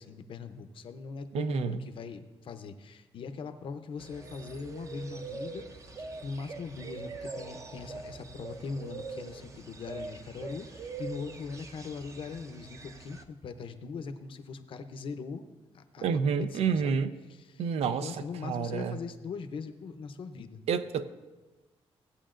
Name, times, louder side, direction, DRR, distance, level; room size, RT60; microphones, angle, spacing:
voice 1, 0.0-15.5 15.7-17.0 17.4-20.6, left 5 dB, 60° left, 9 dB, 0.6 m, -41 dB
voice 2, 1.3-1.8 16.0-17.1 17.6-19.0 20.7-21.0, right 6 dB, 90° right, 11 dB, 0.5 m, -29 dB
sound 1, 4.0-13.2, right 4 dB, 30° right, 0.6 m, -43 dB
16.5 x 8.2 x 2.5 m, 1.2 s
wide cardioid pair, 155°, 10 cm